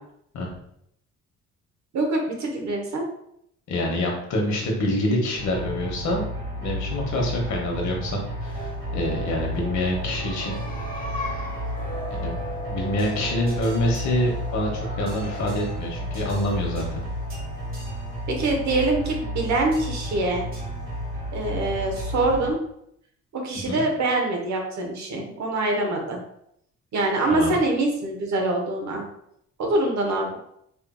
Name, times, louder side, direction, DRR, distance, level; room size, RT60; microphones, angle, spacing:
voice 1, 1.9-3.0 18.3-20.4 21.3-22.6 23.3-26.2 26.9-29.0 29.6-30.4, right 2 dB, 65° right, 2 dB, 1.1 m, -24 dB
voice 2, 3.7-6.3 6.6-10.5 12.1-12.4 12.6-17.0 23.6-23.8 27.3-27.5, left 1 dB, 65° left, 0 dB, 1.3 m, -26 dB
sound 1, 5.4-22.5, equal, 30° right, 1.4 m, -32 dB
sound 2, 8.2-17.7, equal, 25° left, 1.1 m, -38 dB
4.8 x 2.9 x 2.3 m, 0.73 s
cardioid pair, 90°, 30 cm